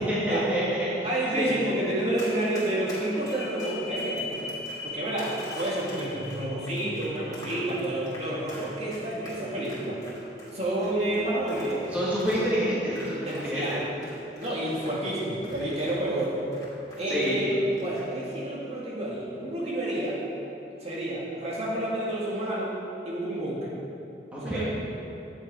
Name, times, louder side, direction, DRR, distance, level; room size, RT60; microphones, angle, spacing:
voice 1, 0.1-1.8 11.9-13.8 17.1-17.5 24.3-24.6, equal, 10° right, -9 dB, 1.8 m, -28 dB
voice 2, 1.0-4.4 4.8-10.0 10.5-11.8 13.3-13.8 14.4-16.4 17.0-20.2 20.8-22.7 23.0-23.8 24.4-24.6, right 1 dB, 35° right, -6 dB, 2.1 m, -29 dB
sound 1, 1.5-17.0 17.5-17.6, left 1 dB, 65° left, 1.4 m, -41 dB
Run, 2.1-13.7 14.0-17.4 17.7-18.0, left 1 dB, 20° left, 2.6 m, -46 dB
11.0 x 8.4 x 4.8 m, 2.8 s
head